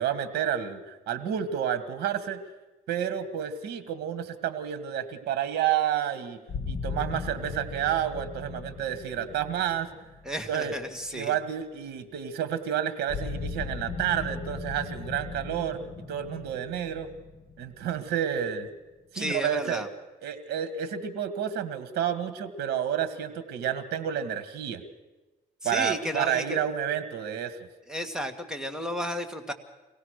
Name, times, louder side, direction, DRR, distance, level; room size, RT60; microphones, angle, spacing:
voice 1, 0.0-2.4 2.9-6.4 6.7-9.9 10.5-10.7 11.1-15.8 16.1-17.1 17.6-18.7 19.1-19.9 20.2-24.8 25.6-27.7, right 9 dB, 70° right, 13 dB, 1.7 m, -30 dB
sound 1, 6.5-11.4 13.1-18.7, left 4 dB, 40° left, 2.5 m, -38 dB
voice 2, 10.2-11.4 19.1-19.9 25.6-26.7 27.9-29.5, equal, 5° right, 6 dB, 1.8 m, -33 dB
24.0 x 17.5 x 6.5 m, 1.1 s
cardioid pair, 110°, 17 cm